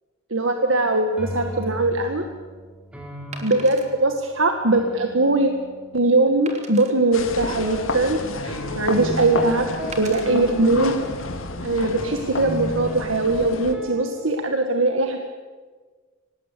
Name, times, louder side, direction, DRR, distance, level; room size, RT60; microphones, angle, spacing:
voice 1, 0.3-2.2 3.4-5.5 5.9-9.7 10.0-11.0 11.6-15.2, right 2 dB, 75° right, 5 dB, 1.8 m, -21 dB
sound 1, 0.6-6.5 7.6-7.9 8.5-11.5 12.0-14.3, equal, 5° right, 3.3 m, -37 dB
Wood, 1.7-1.9 3.3-3.9 4.5-4.6 5.2-5.3 6.5-6.9 7.7-8.5 9.9-10.3 11.0-11.2, right 3 dB, 35° right, 3.2 m, -40 dB
sound 2, 7.1-13.7, left 2 dB, 90° left, 2.4 m, -30 dB
25.0 x 19.5 x 8.4 m, 1.5 s
head